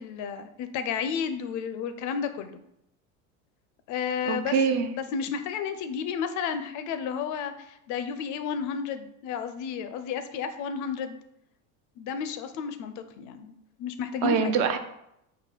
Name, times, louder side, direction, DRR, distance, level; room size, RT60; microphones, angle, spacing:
voice 1, 0.0-2.6 3.9-4.5 4.8-11.2 12.0-13.5 13.8-14.5, left 7 dB, 50° left, 10 dB, 0.4 m, -32 dB
voice 2, 4.3-4.9 14.2-14.8, right 6 dB, 50° right, 8 dB, 0.5 m, -24 dB
4.0 x 2.2 x 4.4 m, 0.79 s
supercardioid pair, 100°, 41 cm